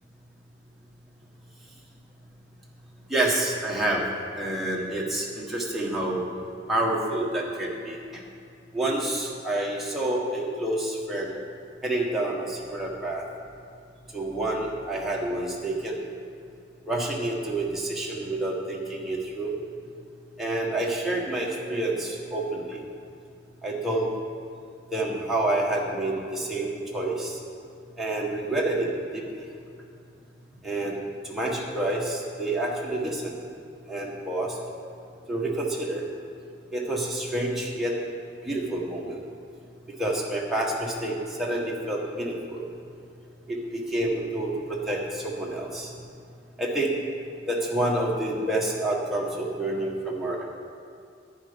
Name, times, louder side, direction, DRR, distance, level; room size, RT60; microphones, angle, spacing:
voice 1, 3.1-4.0 4.3-6.2 6.7-8.0 8.7-11.4 11.8-13.2 14.1-16.0 16.9-19.5 20.4-22.8 23.6-24.1 24.9-27.4 28.0-28.9 29.1-29.4 30.6-31.0 31.2-33.3 33.9-34.5 35.3-36.0 36.7-37.9 38.4-39.2 40.0-42.6 43.5-45.9 46.6-46.9 47.5-50.4, right 1 dB, ahead, -4 dB, 1.5 m, -28 dB
11.0 x 9.2 x 5.2 m, 2.4 s
head